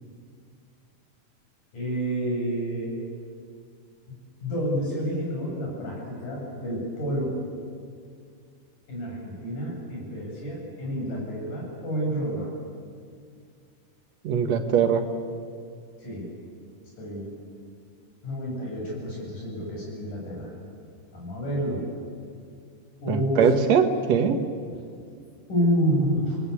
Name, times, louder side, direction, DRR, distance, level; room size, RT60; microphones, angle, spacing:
voice 1, 1.7-2.9 4.1-7.4 8.9-12.5 16.0-16.3 17.0-17.3 18.2-20.5 21.1-21.8 23.0-23.5 25.5-26.4, equal, 90° left, -2 dB, 9.4 m, -29 dB
voice 2, 14.2-15.0 23.1-24.4, right 7 dB, 60° right, 5 dB, 2.7 m, -21 dB
28.0 x 20.5 x 8.5 m, 2.2 s
omnidirectional pair, 3.5 m